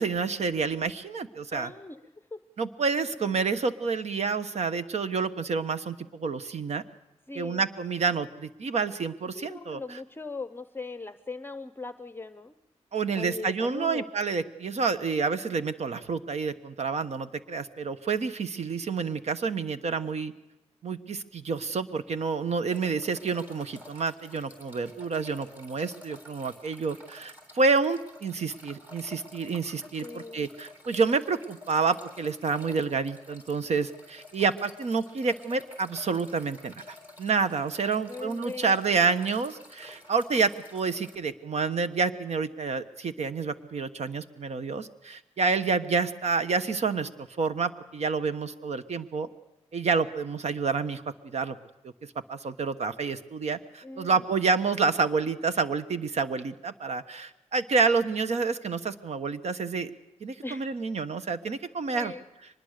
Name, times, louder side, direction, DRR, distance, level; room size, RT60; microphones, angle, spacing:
voice 1, 0.0-1.7 2.6-6.8 7.3-10.0 12.9-20.3 20.8-47.1 47.4-49.3 49.7-51.6 52.3-59.9 60.2-62.1, right 4 dB, 65° right, 11 dB, 1.3 m, -28 dB
voice 2, 1.5-2.0 2.3-2.4 3.2-3.4 7.3-7.6 9.3-12.5 13.1-14.1 30.0-30.5 38.0-39.1 53.8-54.2 60.4-60.6 61.9-62.2, left 3 dB, 20° left, 12 dB, 0.8 m, -39 dB
sound 1, 22.7-41.2, left 2 dB, 15° right, 4.1 m, -51 dB
23.5 x 20.5 x 6.6 m, 0.94 s
wide cardioid pair, 100°, 12 cm